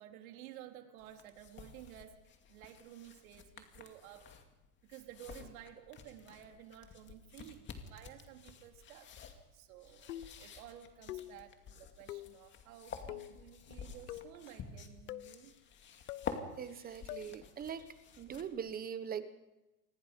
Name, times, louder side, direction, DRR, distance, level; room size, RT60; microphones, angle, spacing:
voice 1, 0.0-2.2 2.5-4.3 4.8-15.5, right 11 dB, 60° right, 4 dB, 3.6 m, -54 dB
sound 1, 1.0-18.7, left 6 dB, 25° left, 2.3 m, -50 dB
sound 2, 10.1-10.5 11.1-11.5 12.1-12.4 13.1-13.4 14.1-14.4 15.1-15.4 16.1-16.3 17.1-17.3, left 15 dB, 75° left, 0.9 m, -45 dB
voice 2, 16.6-17.9 18.2-19.3, right 8 dB, 20° right, 11 dB, 1.1 m, -41 dB
27.5 x 20.5 x 5.3 m, 0.99 s
supercardioid pair, 145°, 47 cm